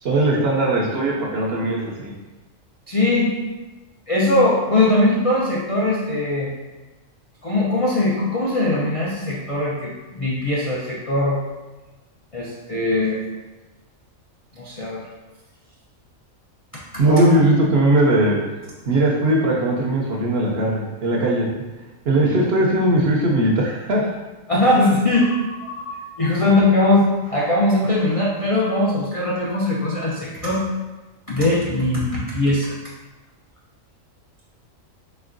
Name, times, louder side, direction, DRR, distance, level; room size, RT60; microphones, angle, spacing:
voice 1, 0.0-2.1 17.0-18.4 18.9-21.5 22.1-24.1, right 1 dB, 60° right, -1 dB, 0.7 m, -19 dB
voice 2, 2.9-3.3 4.1-6.5 7.4-11.4 12.3-13.2 14.5-15.1 17.1-17.5 24.5-30.6 31.3-32.7, left 2 dB, 50° left, -6 dB, 0.4 m, -20 dB
4.3 x 3.3 x 2.5 m, 1.2 s
omnidirectional pair, 1.4 m